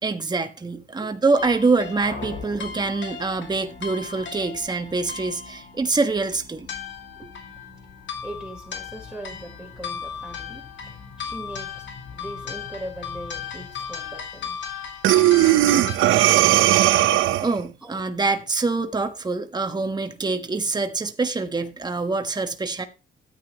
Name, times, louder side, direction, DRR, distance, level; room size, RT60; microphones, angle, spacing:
voice 1, 0.0-6.7 17.4-22.8, right 3 dB, 20° right, 1.3 m, -25 dB
voice 2, 1.0-1.5 2.5-2.9 7.2-7.3 8.2-11.8 12.1-14.6 17.8-18.0, right 1 dB, 5° right, 4.0 m, -40 dB
sound 1, 1.4-16.0, left 7 dB, 70° left, 2.2 m, -37 dB
sound 2, 2.0-14.8, left 4 dB, 50° left, 4.7 m, -45 dB
Breathing, 15.0-17.6, right 14 dB, 85° right, 0.8 m, -17 dB
13.0 x 9.1 x 3.0 m
cardioid pair, 90°, 20 cm